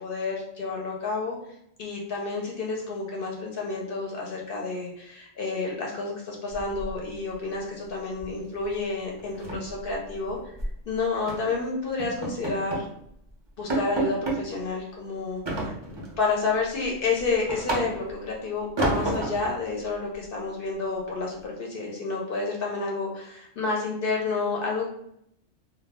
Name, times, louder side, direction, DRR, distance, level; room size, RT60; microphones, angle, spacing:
voice 1, 0.0-1.4 1.8-10.4 10.9-12.8 13.6-24.9, left 3 dB, 60° left, -1 dB, 0.6 m, -30 dB
sound 1, 6.5-7.3 7.6-7.9 8.2-8.4 8.7-8.8 9.2-10.8 11.3-11.5 12.0-12.9 13.3-13.4 13.7-14.4 15.5-16.2 16.6-18.2 18.8-19.5, right 2 dB, 45° right, 0.3 m, -30 dB
2.2 x 2.0 x 3.4 m, 0.74 s
omnidirectional pair, 1.3 m